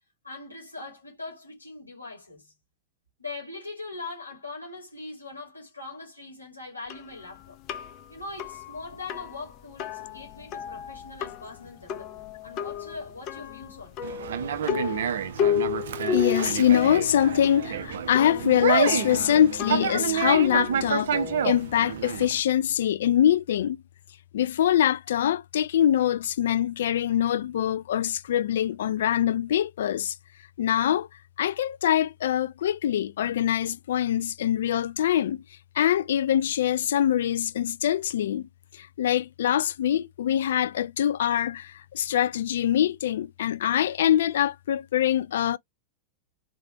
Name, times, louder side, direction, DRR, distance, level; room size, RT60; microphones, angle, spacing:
voice 1, 0.2-2.5 3.2-7.6 8.1-14.0, left 3 dB, 85° left, 2.1 m, -41 dB
sound 1, 6.9-22.2, left 8 dB, 40° left, 0.7 m, -34 dB
Conversation, 14.0-22.4, right 8 dB, 60° right, 0.5 m, -29 dB
voice 2, 16.1-21.1 21.4-23.8 24.3-30.2 30.6-31.1 31.4-35.4 35.8-38.5 38.7-45.6, left 10 dB, 60° left, 0.3 m, -24 dB
3.4 x 3.1 x 2.8 m
figure-of-eight pair, 90°, 0 cm